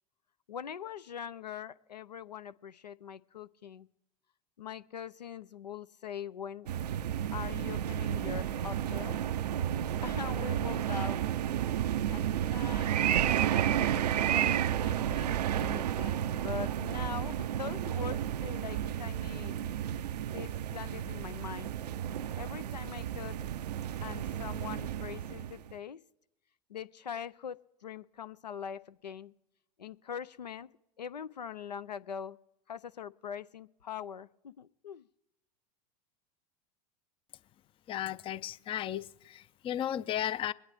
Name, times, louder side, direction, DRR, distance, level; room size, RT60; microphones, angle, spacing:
voice 1, 0.5-3.9 4.6-6.7 7.3-9.2 10.0-11.2 12.1-13.1 13.5-19.6 20.3-21.7 22.4-23.4 24.0-26.0 26.7-29.3 29.8-30.7 31.0-32.4 32.7-35.1, left 8 dB, 85° left, 0.4 m, -42 dB
sound 1, 6.7-25.8, right 10 dB, 75° right, 0.4 m, -32 dB
voice 2, 37.9-40.5, left 11 dB, 25° left, 0.4 m, -35 dB
22.0 x 9.8 x 3.4 m
figure-of-eight pair, 85°, 21 cm